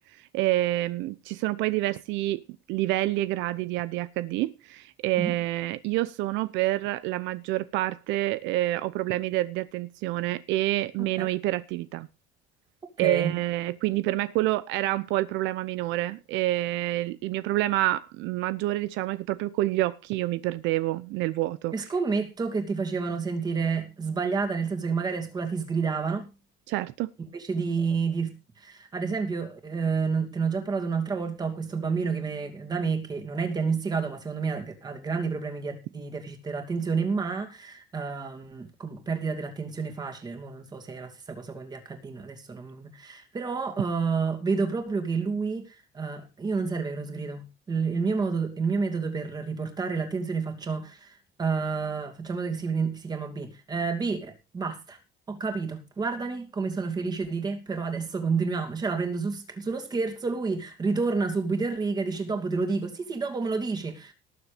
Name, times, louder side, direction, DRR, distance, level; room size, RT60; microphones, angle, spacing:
voice 1, 0.2-2.4 2.7-12.1 13.0-21.9 26.7-27.1, right 16 dB, 80° right, 0.8 m, -28 dB
voice 2, 13.0-13.3 21.7-26.3 27.3-55.0 55.3-64.1, right 4 dB, 20° right, 2.7 m, -29 dB
18.5 x 7.3 x 5.1 m
cardioid pair, 170°, 19 cm